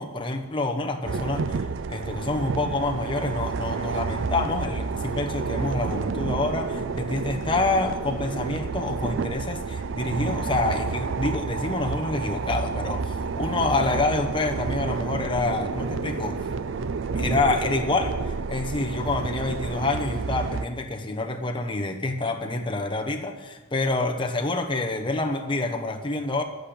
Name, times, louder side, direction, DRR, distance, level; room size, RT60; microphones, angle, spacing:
voice 1, 0.0-16.4 17.1-26.4, left 2 dB, 25° left, 4 dB, 1.0 m, -27 dB
sound 1, 1.0-20.7, right 4 dB, 60° right, 0.4 m, -30 dB
11.5 x 8.2 x 6.8 m, 1.2 s
head